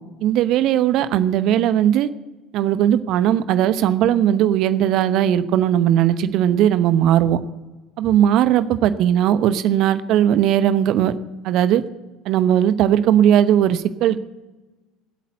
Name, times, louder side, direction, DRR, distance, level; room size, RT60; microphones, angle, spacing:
voice 1, 0.2-2.1 2.5-7.4 8.0-11.1 11.4-11.8 12.3-14.2, right 10 dB, 55° right, 13 dB, 0.9 m, -18 dB
20.5 x 8.5 x 8.2 m, 1.2 s
figure-of-eight pair, 65°, 0 cm